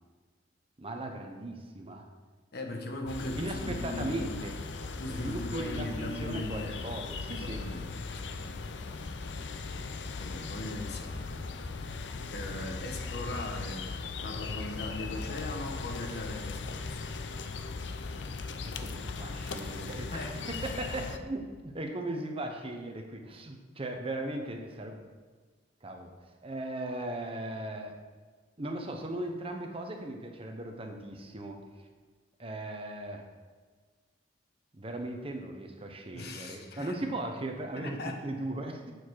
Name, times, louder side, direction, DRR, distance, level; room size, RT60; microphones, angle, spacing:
voice 1, 0.8-2.1 3.4-4.5 5.1-7.6 18.6-25.0 25.8-26.1 26.4-27.9 28.6-31.6 32.4-33.2 34.7-38.9, right 1 dB, 30° right, 3 dB, 1.0 m, -38 dB
voice 2, 2.5-4.2 5.0-6.8 7.3-8.6 10.2-11.5 12.3-17.1 20.1-20.4 36.1-37.0 37.8-38.2, left 1 dB, 60° left, 3 dB, 1.2 m, -39 dB
sound 1, 3.1-21.2, left 4 dB, 85° left, 0.6 m, -38 dB
8.0 x 7.0 x 4.7 m, 1.5 s
head